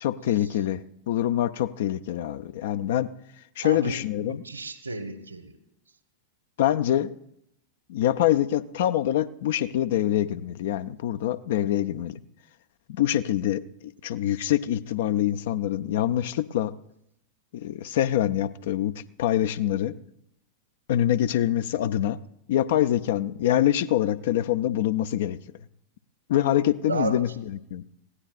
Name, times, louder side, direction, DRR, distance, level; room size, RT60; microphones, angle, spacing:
voice 1, 0.0-3.1 3.6-4.4 6.6-7.1 7.9-12.2 12.9-16.7 17.5-18.9 19.2-19.9 20.9-22.2 22.5-25.4 26.3-27.8, left 12 dB, 55° left, 14 dB, 0.6 m, -25 dB
voice 2, 3.6-5.5 26.8-27.2, right 3 dB, 80° right, 10 dB, 1.3 m, -33 dB
21.0 x 16.5 x 2.5 m, 0.80 s
figure-of-eight pair, 90°, 0 cm